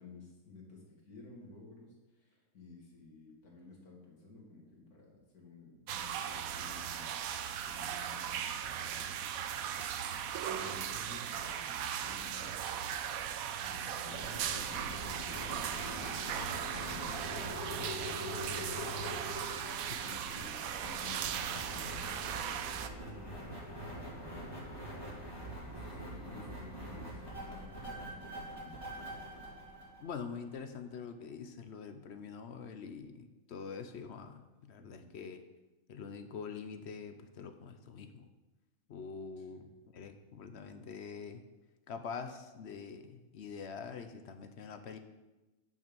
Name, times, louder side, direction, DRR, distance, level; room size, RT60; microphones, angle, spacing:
voice 1, 0.0-7.1 7.6-9.3 10.5-16.3 16.6-19.3 19.5-23.8 24.1-24.8 25.6-28.8 34.8-35.1 39.4-39.6, left 3 dB, 90° left, -2 dB, 2.6 m, -54 dB
sound 1, 5.9-22.9, right 9 dB, 75° right, 1.0 m, -38 dB
sound 2, 14.1-30.6, equal, 15° left, 2.8 m, -44 dB
voice 2, 30.0-35.4 35.9-38.3 38.9-41.4 41.9-45.0, left 5 dB, 55° left, 8 dB, 0.9 m, -45 dB
9.5 x 5.6 x 5.2 m, 1.1 s
omnidirectional pair, 1.5 m